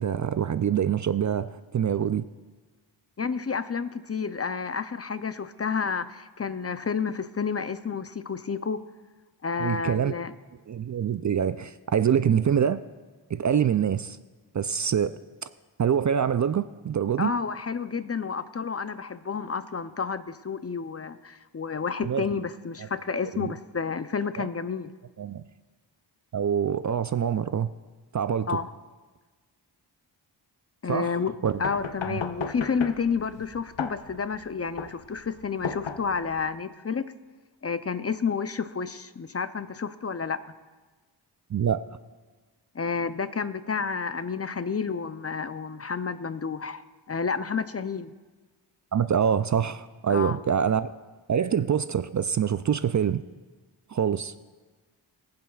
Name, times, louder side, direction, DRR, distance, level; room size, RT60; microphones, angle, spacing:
voice 1, 0.0-2.3 9.6-10.1 10.7-12.8 13.3-14.2 14.5-15.2 15.8-17.3 22.0-22.3 23.4-23.5 24.4-24.5 25.2-25.4 26.3-27.7 28.1-28.6 30.9-31.2 31.4-31.6 32.1-32.2 41.5-41.8 48.9-50.9 51.3-53.2 53.9-54.3, right 8 dB, 40° right, 0.4 m, -25 dB
voice 2, 3.2-8.8 9.4-10.3 17.2-24.9 28.5-28.7 30.8-37.1 37.6-40.4 42.7-48.1 50.1-50.4, left 5 dB, 30° left, 0.5 m, -30 dB
sound 1, 31.5-36.5, left 6 dB, 70° left, 0.9 m, -36 dB
22.0 x 7.7 x 2.4 m
cardioid pair, 45°, 47 cm